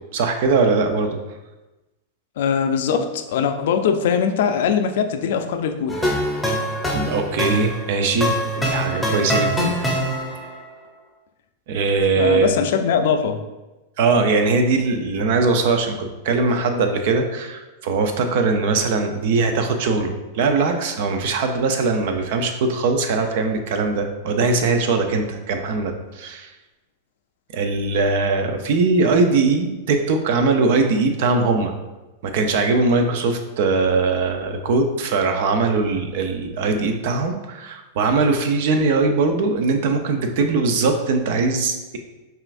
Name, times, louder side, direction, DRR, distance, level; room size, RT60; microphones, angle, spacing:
voice 1, 0.1-1.2 6.9-8.3 8.6-9.7 11.7-12.5 14.0-26.5 27.5-31.7 32.2-42.0, right 3 dB, 65° right, 6 dB, 0.5 m, -21 dB
voice 2, 2.4-6.0 12.2-13.4, left 7 dB, 70° left, 7 dB, 0.4 m, -21 dB
sound 1, 5.9-10.6, equal, 5° left, 0.7 m, -24 dB
5.5 x 2.4 x 2.5 m, 1.1 s
hypercardioid pair, 105°, 0 cm